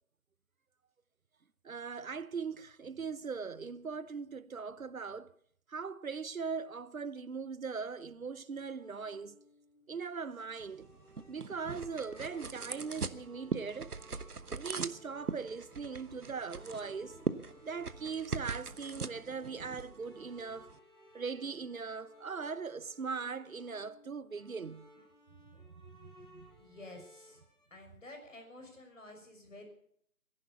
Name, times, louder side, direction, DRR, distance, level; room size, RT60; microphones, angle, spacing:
voice 1, 1.6-5.3 5.7-9.4 9.9-10.9 11.3-14.0 14.5-17.2 17.6-20.7 21.1-24.9 26.0-26.5, right 5 dB, 65° right, 0.9 m, -40 dB
sound 1, 8.7-27.7, equal, 35° left, 7.7 m, -59 dB
sound 2, 10.6-20.8, right 4 dB, 85° right, 1.2 m, -41 dB
voice 2, 26.6-27.4 27.7-29.6, left 2 dB, 60° left, 6.0 m, -51 dB
19.0 x 11.0 x 7.0 m
figure-of-eight pair, 165°, 44 cm